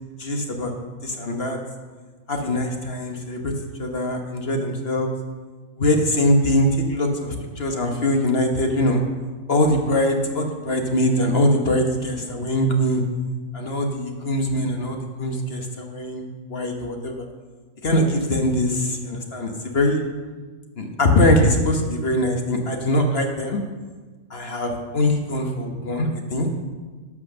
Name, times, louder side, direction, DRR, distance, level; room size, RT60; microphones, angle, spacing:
voice 1, 0.2-0.7 1.0-1.6 2.3-3.5 3.8-5.1 5.8-9.0 9.5-13.0 13.5-17.2 17.8-20.0 20.8-23.6 24.3-26.5, left 1 dB, 45° left, 3 dB, 1.3 m, -22 dB
11.0 x 6.1 x 6.5 m, 1.4 s
omnidirectional pair, 1.5 m